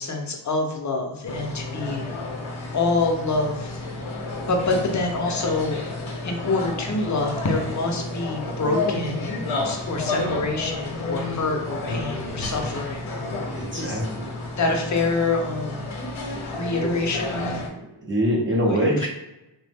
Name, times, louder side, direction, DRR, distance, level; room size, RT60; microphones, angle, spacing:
voice 1, 0.0-2.3 2.7-3.8 4.5-5.8 6.2-9.4 9.6-13.1 13.7-14.0 14.6-15.9 16.5-17.6 18.7-19.1, left 3 dB, 35° left, 2 dB, 0.6 m, -26 dB
sound 1, 1.3-17.7, left 2 dB, 70° left, 0.8 m, -31 dB
voice 2, 13.5-14.3 16.8-16.9 17.3-17.7 18.0-19.1, equal, 25° right, -5 dB, 0.6 m, -24 dB
3.1 x 2.1 x 3.3 m, 0.92 s
wide cardioid pair, 105°, 49 cm